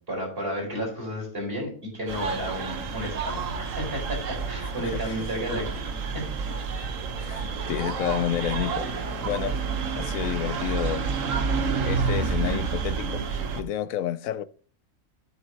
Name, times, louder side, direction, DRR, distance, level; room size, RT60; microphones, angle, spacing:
voice 1, 0.1-5.8 6.1-6.5, equal, 45° right, 4.9 m, -32 dB
sound 1, 2.1-13.6, right 5 dB, 70° right, 1.3 m, -29 dB
voice 2, 4.6-5.3 6.7-9.6 9.9-11.1 11.8-14.4, left 12 dB, 75° left, 1.0 m, -31 dB
9.7 x 8.2 x 2.8 m
omnidirectional pair, 1.5 m